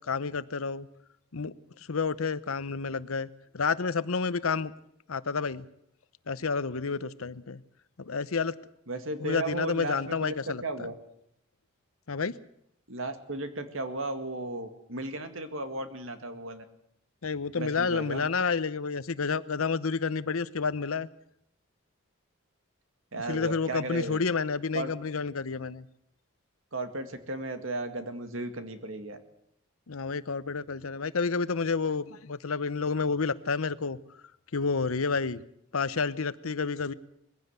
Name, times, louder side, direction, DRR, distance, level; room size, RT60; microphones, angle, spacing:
voice 1, 0.1-0.9 1.3-1.5 1.9-4.7 5.1-5.6 6.3-7.6 8.0-8.5 9.2-10.6 12.1-12.3 17.2-21.1 23.3-25.9 29.9-34.0 34.5-35.4 35.7-36.9, left 5 dB, 80° left, 0.8 m, -30 dB
voice 2, 8.9-10.3 10.6-10.9 12.9-16.6 17.6-18.3 23.1-24.2 24.7-24.9 26.7-29.2, right 2 dB, 70° right, 2.1 m, -35 dB
21.0 x 16.0 x 8.1 m
head